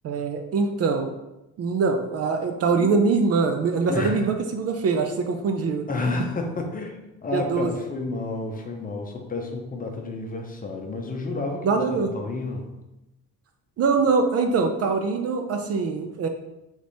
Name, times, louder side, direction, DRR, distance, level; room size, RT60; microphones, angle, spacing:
voice 1, 0.0-1.1 1.6-5.9 7.3-7.7 11.6-12.1 13.8-16.3, right 4 dB, 45° right, 5 dB, 0.5 m, -23 dB
voice 2, 3.9-4.3 5.9-12.8, left 3 dB, 25° left, 2 dB, 0.7 m, -30 dB
3.4 x 3.3 x 4.0 m, 0.95 s
cardioid pair, 120°, 34 cm